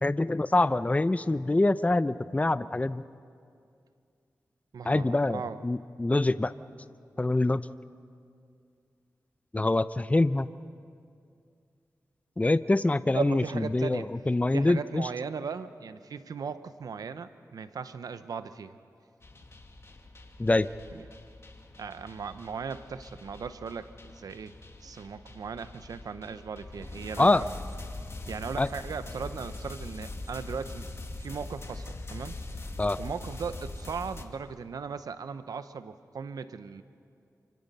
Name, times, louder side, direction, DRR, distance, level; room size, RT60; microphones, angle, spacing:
voice 1, 0.0-3.0 4.8-6.5 7.2-7.6 9.5-10.5 12.4-13.4 13.7-15.1 20.4-20.7 27.2-27.4 28.6-28.7 32.8-33.0, left 2 dB, 25° left, 14 dB, 0.6 m, -25 dB
voice 2, 4.7-5.6 13.1-14.1 14.5-18.7 20.9-21.1 21.8-24.5 24.8-27.5 28.3-30.9 31.2-32.4 33.0-36.8, right 5 dB, 90° right, 12 dB, 0.8 m, -37 dB
sound 1, 19.2-34.3, left 2 dB, 45° left, 2.1 m, -42 dB
28.5 x 25.5 x 5.5 m, 2.3 s
cardioid pair, 50°, 6 cm